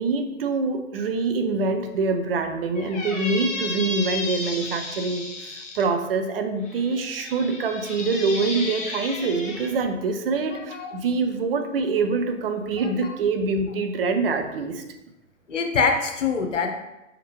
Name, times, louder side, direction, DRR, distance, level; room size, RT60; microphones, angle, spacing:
voice 1, 0.0-14.8, right 4 dB, 50° right, 6 dB, 0.6 m, -25 dB
Squeak, 2.7-5.8 6.6-9.7, left 2 dB, 20° left, 0.7 m, -33 dB
voice 2, 10.5-11.0 12.8-12.9 15.5-16.7, left 5 dB, 70° left, 4 dB, 0.9 m, -24 dB
4.7 x 3.6 x 3.1 m, 0.95 s
figure-of-eight pair, 110°, 39 cm